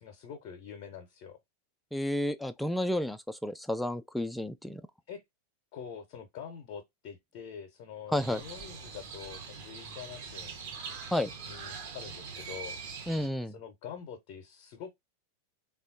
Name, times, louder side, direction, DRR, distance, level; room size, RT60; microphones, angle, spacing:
voice 1, 0.0-1.4 5.1-5.2 5.7-10.6 10.9-11.0 11.5-12.8 13.4-14.9, left 7 dB, 45° left, 0.6 m, -45 dB
voice 2, 1.9-4.8 8.1-8.4 11.1-11.3 13.1-13.5, left 1 dB, 5° left, 0.3 m, -31 dB
Crow, 8.2-13.3, right 5 dB, 50° right, 0.9 m, -43 dB
3.4 x 2.3 x 2.5 m
figure-of-eight pair, 90°, 0 cm